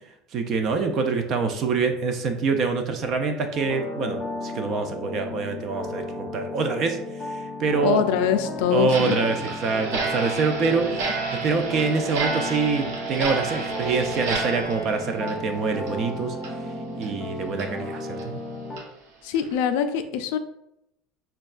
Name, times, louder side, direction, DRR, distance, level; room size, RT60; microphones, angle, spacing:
voice 1, 0.3-8.0 8.7-10.9 11.4-16.4 16.9-18.4, right 4 dB, 45° right, 6 dB, 0.4 m, -25 dB
sound 1, 3.5-18.8, left 2 dB, 20° left, 0.6 m, -34 dB
voice 2, 7.8-9.2 19.2-20.4, left 9 dB, 75° left, 9 dB, 0.3 m, -23 dB
Clock, 8.9-16.1 16.4-16.5 17.0-17.1 17.6-17.7 18.2-18.3 18.8-18.9 19.3-19.5, right 4 dB, 80° right, 0.8 m, -31 dB
5.0 x 2.2 x 2.4 m, 0.82 s
supercardioid pair, 130°, 0 cm